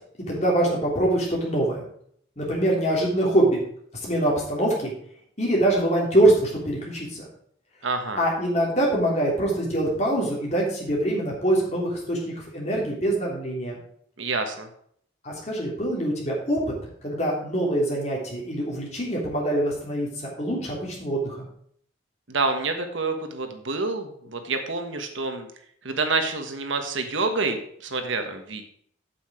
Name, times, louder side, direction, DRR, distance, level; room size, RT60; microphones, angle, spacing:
voice 1, 0.3-1.8 2.4-3.6 4.0-4.9 5.4-7.3 8.2-13.8 15.2-16.6 17.0-21.4, right 1 dB, 35° left, -3 dB, 3.2 m, -24 dB
voice 2, 7.8-8.2 14.2-14.7 22.3-25.5 25.8-28.6, right 3 dB, 70° right, 6 dB, 1.3 m, -27 dB
8.5 x 7.7 x 4.9 m, 0.64 s
head